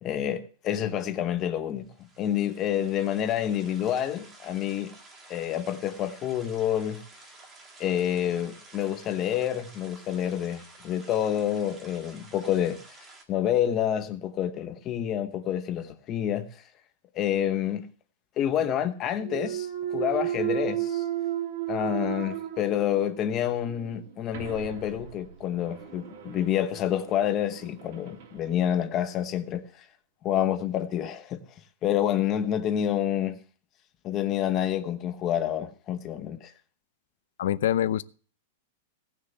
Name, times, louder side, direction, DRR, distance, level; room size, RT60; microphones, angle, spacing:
voice 1, 0.0-1.9 2.2-4.9 5.3-7.0 7.8-12.8 13.3-16.5 17.1-17.9 18.4-21.0 21.7-29.9 30.2-31.4 31.8-33.4 34.0-36.5, left 10 dB, 25° left, 1.0 m, -28 dB
sound 1, 1.8-13.2, right 2 dB, 15° right, 2.0 m, -51 dB
Thump thud, 19.2-23.2 23.7-28.3, right 11 dB, 50° right, 2.9 m, -34 dB
voice 2, 37.4-38.0, left 11 dB, 70° left, 0.7 m, -25 dB
17.5 x 6.7 x 7.0 m
supercardioid pair, 175°, 0 cm